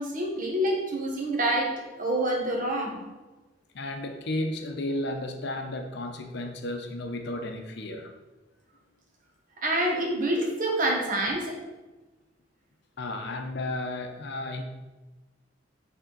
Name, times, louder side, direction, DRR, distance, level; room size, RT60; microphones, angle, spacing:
voice 1, 0.0-3.0 9.6-11.6, right 1 dB, 45° right, 0 dB, 1.2 m, -27 dB
voice 2, 3.7-8.1 13.0-14.6, left 1 dB, 60° left, 5 dB, 0.7 m, -33 dB
6.9 x 3.5 x 3.9 m, 1.2 s
head